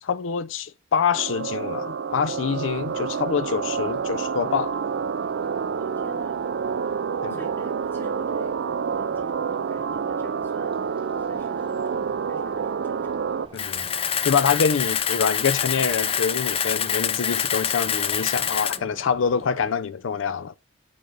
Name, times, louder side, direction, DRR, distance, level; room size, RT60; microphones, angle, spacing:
voice 1, 0.0-4.7 7.2-7.4 13.5-13.8 14.2-20.6, left 6 dB, 85° left, 0.5 m, -25 dB
sound 1, 1.1-13.5, right 6 dB, 70° right, 0.4 m, -28 dB
sound 2, 2.1-19.7, right 2 dB, 25° right, 1.1 m, -46 dB
voice 2, 5.7-6.4 7.3-13.4 18.3-18.4, left 1 dB, 10° left, 3.0 m, -47 dB
Camera, 13.6-18.8, left 8 dB, 30° left, 0.5 m, -26 dB
8.6 x 5.4 x 4.7 m
head